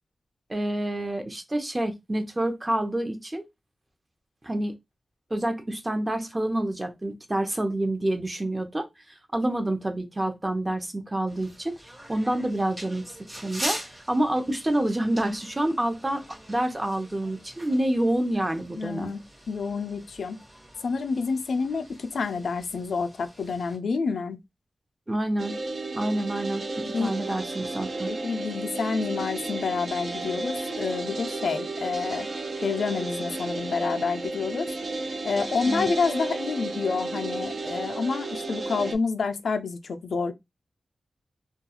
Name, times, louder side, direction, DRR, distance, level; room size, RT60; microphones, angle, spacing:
voice 1, 0.5-3.4 4.4-4.7 5.3-8.9 9.3-13.2 13.4-19.1 25.1-25.5 25.9-28.1 35.6-35.9, right 1 dB, 25° right, 0.6 m, -28 dB
sound 1, 11.3-23.8, right 1 dB, 40° right, 1.2 m, -42 dB
voice 2, 18.7-20.4 20.8-24.4 26.9-27.1 28.1-32.3 32.6-34.7 35.2-40.3, left 5 dB, 85° left, 0.3 m, -28 dB
sound 2, 25.4-39.0, right 2 dB, 65° right, 0.5 m, -33 dB
2.3 x 2.2 x 2.8 m
wide cardioid pair, 85°, 0 cm